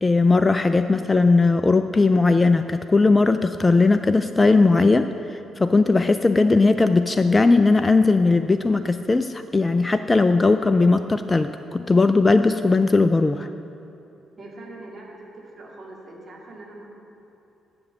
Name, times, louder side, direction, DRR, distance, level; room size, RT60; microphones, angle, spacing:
voice 1, 0.0-13.5, left 3 dB, 25° left, 10 dB, 0.3 m, -18 dB
voice 2, 14.4-16.9, right 2 dB, 35° right, -3 dB, 2.5 m, -42 dB
10.5 x 6.2 x 7.0 m, 2.8 s
figure-of-eight pair, 40°, 0 cm